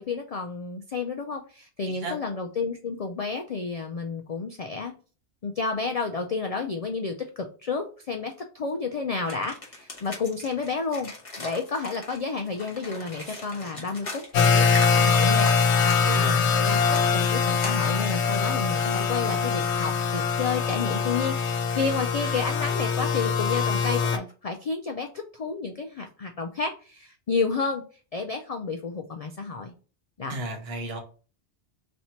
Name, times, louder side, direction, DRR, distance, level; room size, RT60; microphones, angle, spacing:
voice 1, 0.0-4.9 5.4-11.1 11.4-16.8 17.1-27.8 28.1-29.7 30.2-30.4, left 4 dB, 60° left, 4 dB, 0.4 m, -31 dB
voice 2, 1.9-2.2 14.3-14.5 15.8-16.5 30.3-31.0, right 2 dB, 65° right, 3 dB, 1.2 m, -35 dB
sound 1, 9.3-16.5 16.9-18.6, left 2 dB, 30° left, 1.1 m, -38 dB
sound 2, 14.3-24.2, left 5 dB, 75° left, 0.9 m, -23 dB
3.2 x 2.8 x 4.2 m, 0.37 s
omnidirectional pair, 1.2 m